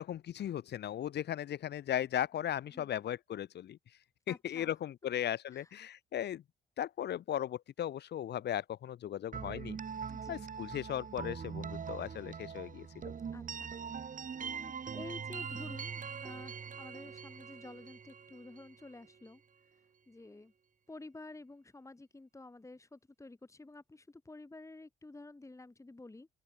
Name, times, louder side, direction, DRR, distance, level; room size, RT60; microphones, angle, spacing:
voice 1, 0.0-3.8 4.3-6.4 6.8-9.8 10.3-12.9, left 11 dB, 60° left, 0.7 m, -37 dB
voice 2, 4.3-4.7 5.5-5.7 10.1-10.4 13.3-19.4 19.7-20.5 20.9-26.3, left 2 dB, 15° left, 2.1 m, -51 dB
sound 1, 9.3-19.1, right 6 dB, 40° right, 2.1 m, -42 dB
open air
cardioid pair, 90°, 20 cm